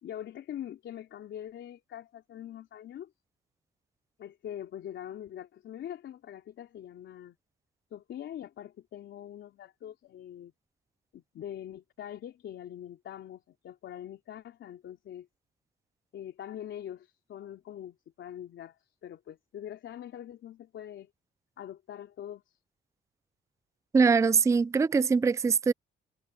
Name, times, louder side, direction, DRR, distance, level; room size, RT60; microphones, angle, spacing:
voice 1, 0.0-3.1 4.2-7.4 7.9-10.5 11.1-15.3 16.1-21.1 21.6-22.6, left 10 dB, 70° left, 3.6 m, -43 dB
voice 2, 23.9-25.7, right 5 dB, 15° right, 0.4 m, -23 dB
cardioid pair, 90°, 20 cm